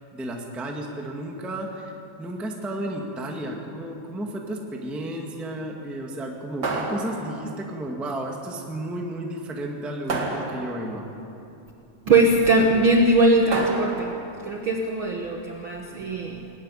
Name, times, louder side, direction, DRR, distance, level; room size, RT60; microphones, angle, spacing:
voice 1, 0.1-1.9 2.2-11.0, right 1 dB, ahead, 1 dB, 1.1 m, -33 dB
sound 1, 6.6-7.7 10.1-11.1 13.5-14.4, right 3 dB, 40° right, 2.0 m, -30 dB
voice 2, 12.0-16.5, right 2 dB, 55° right, 1 dB, 1.5 m, -21 dB
20.5 x 14.0 x 9.8 m, 2.7 s
omnidirectional pair, 3.8 m